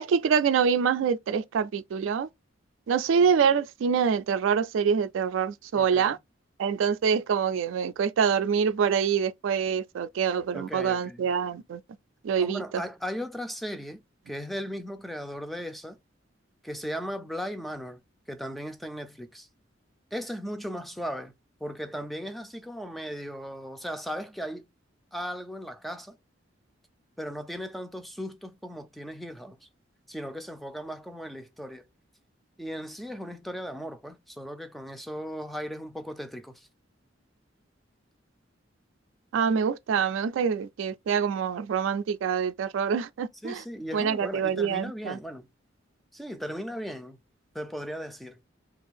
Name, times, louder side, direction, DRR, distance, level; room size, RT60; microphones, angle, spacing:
voice 1, 0.0-2.3 2.9-6.2 6.6-11.8 12.2-12.6 39.3-43.6 43.9-45.2, right 6 dB, 85° right, 0.3 m, -25 dB
voice 2, 5.7-6.2 10.5-11.3 12.4-16.0 16.6-18.0 18.3-19.5 20.1-21.3 21.6-24.7 25.1-26.2 27.2-29.7 30.1-31.9 32.6-36.7 43.4-45.5 46.1-47.2 47.5-48.4, equal, ahead, 0.3 m, -37 dB
2.6 x 2.4 x 3.3 m
head